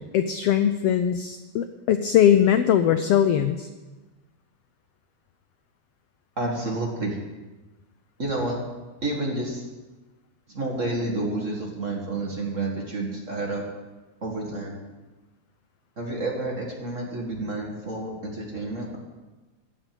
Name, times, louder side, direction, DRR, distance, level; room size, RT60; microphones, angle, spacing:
voice 1, 0.0-3.7, left 9 dB, 85° left, 9 dB, 1.3 m, -21 dB
voice 2, 6.4-7.2 8.2-8.6 9.0-9.7 10.5-13.6 14.2-14.8 16.0-19.0, right 2 dB, 30° right, -1 dB, 1.7 m, -29 dB
15.0 x 6.1 x 9.3 m, 1.2 s
omnidirectional pair, 3.4 m